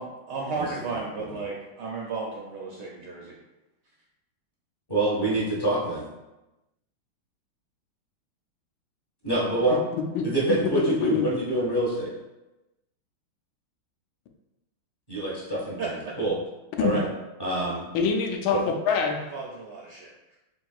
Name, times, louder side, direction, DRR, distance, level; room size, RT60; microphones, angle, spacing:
voice 1, 0.0-3.4 15.8-16.0 19.2-20.4, right 4 dB, 75° right, -2 dB, 1.0 m, -34 dB
voice 2, 0.6-1.0 4.9-6.0 9.2-9.8 10.2-12.1 15.1-15.9 16.2-16.4 16.8-17.1 17.4-17.9 18.5-18.6, right 2 dB, 15° left, -6 dB, 0.8 m, -26 dB
voice 3, 9.9-11.4 16.8-17.0 17.9-19.2, left 5 dB, 85° left, 3 dB, 1.4 m, -25 dB
5.0 x 3.5 x 2.3 m, 1.0 s
omnidirectional pair, 2.3 m